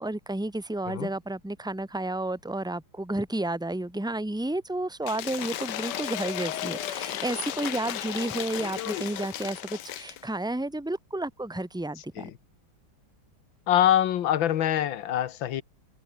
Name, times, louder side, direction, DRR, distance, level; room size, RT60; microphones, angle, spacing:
voice 1, 0.0-12.3, right 1 dB, 5° right, 0.4 m, -31 dB
Cheering / Applause / Crowd, 5.0-10.2, left 12 dB, 65° left, 1.4 m, -34 dB
voice 2, 13.7-15.6, left 11 dB, 85° left, 1.8 m, -24 dB
omnidirectional pair, 2.1 m